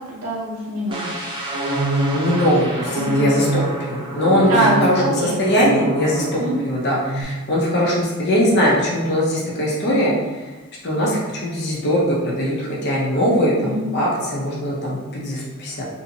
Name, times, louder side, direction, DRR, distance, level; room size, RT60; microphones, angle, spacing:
voice 1, 0.1-1.1 2.9-3.4 4.5-5.4 6.4-6.6 13.6-13.9, right 2 dB, 65° right, -6 dB, 0.6 m, -23 dB
sound 1, 0.9-6.6 6.9-7.2, right 1 dB, 20° right, 0.3 m, -25 dB
voice 2, 2.1-3.6 3.9-10.2 10.8-15.8, equal, 50° left, -4 dB, 0.6 m, -21 dB
2.7 x 2.6 x 2.7 m, 1.2 s
head